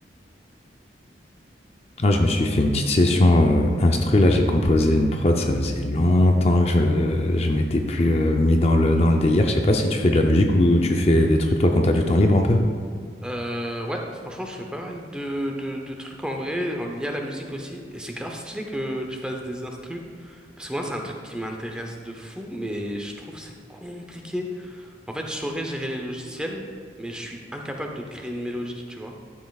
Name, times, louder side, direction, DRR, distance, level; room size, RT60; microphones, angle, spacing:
voice 1, 2.0-12.6, left 1 dB, 35° left, 3 dB, 0.5 m, -19 dB
voice 2, 13.2-26.6 27.0-29.1, equal, 5° right, 1 dB, 0.7 m, -32 dB
12.5 x 7.5 x 2.4 m, 2.1 s
head